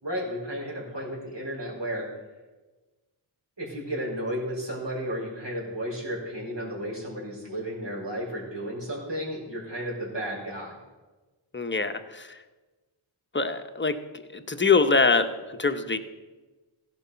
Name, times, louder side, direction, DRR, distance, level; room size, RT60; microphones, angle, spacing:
voice 1, 0.0-2.1 3.6-10.8, equal, 60° right, -4 dB, 4.3 m, -33 dB
voice 2, 11.5-12.3 13.3-14.0 14.3-16.0, left 4 dB, 25° left, 7 dB, 0.9 m, -24 dB
16.0 x 5.4 x 5.7 m, 1.2 s
wide cardioid pair, 50°, 49 cm